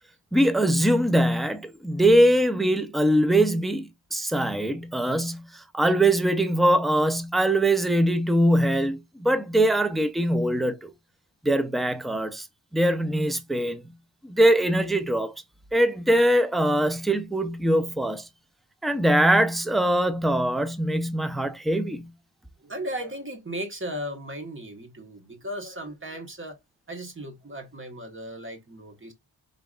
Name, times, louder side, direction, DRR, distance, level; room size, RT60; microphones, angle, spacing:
voice 1, 0.3-10.9 11.4-12.5 12.7-13.8 14.2-15.4 15.7-18.3 18.8-22.1, right 1 dB, ahead, 0.4 m, -22 dB
voice 2, 22.6-26.6 26.9-29.1, right 1 dB, 25° right, 1.3 m, -36 dB
5.6 x 3.9 x 2.4 m
wide cardioid pair, 175°, 46 cm